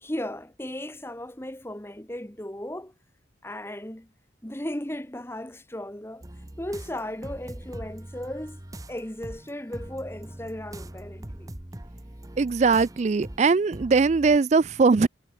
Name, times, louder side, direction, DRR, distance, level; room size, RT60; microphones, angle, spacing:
voice 1, 0.0-2.9 3.4-4.1 4.4-6.3 6.6-8.6 8.9-11.5, left 1 dB, 15° left, 1.4 m, -36 dB
sound 1, 6.2-14.4, right 1 dB, 20° right, 1.1 m, -42 dB
voice 2, 12.4-15.1, right 4 dB, 40° right, 0.4 m, -20 dB
head